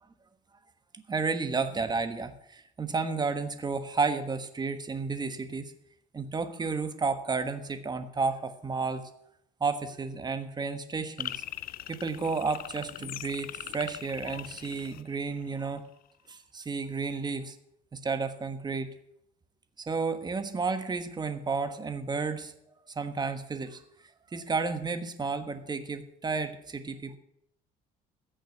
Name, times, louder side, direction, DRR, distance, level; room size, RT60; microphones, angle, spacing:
voice 1, 1.1-5.7 6.1-9.0 9.6-11.4 11.9-15.9 16.3-17.6 17.9-18.9 19.8-22.5 22.9-23.8 24.3-27.2, right 4 dB, 25° right, 9 dB, 1.3 m, -32 dB
sound 1, 11.2-15.7, left 13 dB, 60° left, 0.5 m, -41 dB
14.5 x 6.4 x 7.9 m, 0.73 s
cardioid pair, 110°, 17 cm